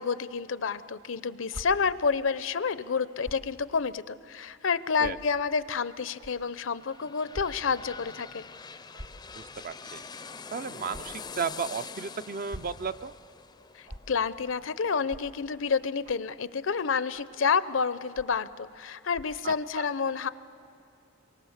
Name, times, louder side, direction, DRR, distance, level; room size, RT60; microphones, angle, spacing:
voice 1, 0.0-8.4 13.7-20.3, left 5 dB, 70° left, 15 dB, 0.6 m, -29 dB
sound 1, 1.5-1.6 3.2-3.5 4.2-4.3 5.0-5.1 6.2-6.3 7.3-7.5 7.8-7.9 8.9-9.2 10.9-11.0 12.3-12.7 13.8-14.0 15.0-15.2 16.0-16.3 17.1-17.4 18.1-18.4 19.1-19.4, equal, 75° right, 2.6 m, -43 dB
sound 2, 6.1-15.6 16.0-16.1, left 5 dB, 20° left, 0.5 m, -45 dB
voice 2, 9.3-10.0 10.5-13.1 19.4-19.8, right 5 dB, 45° right, 13 dB, 0.5 m, -34 dB
26.5 x 24.0 x 7.3 m, 2.7 s
head